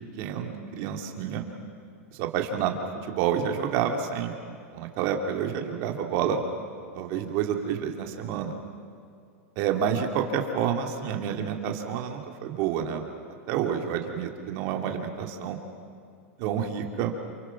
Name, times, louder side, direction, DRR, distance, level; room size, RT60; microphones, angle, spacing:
voice 1, 0.2-1.5 2.1-2.7 3.0-4.3 4.7-6.4 6.9-8.6 9.6-13.0 13.5-15.6 16.4-17.1, right 8 dB, 45° right, 3 dB, 2.8 m, -29 dB
28.5 x 28.0 x 6.0 m, 2.4 s
supercardioid pair, 145°, 8 cm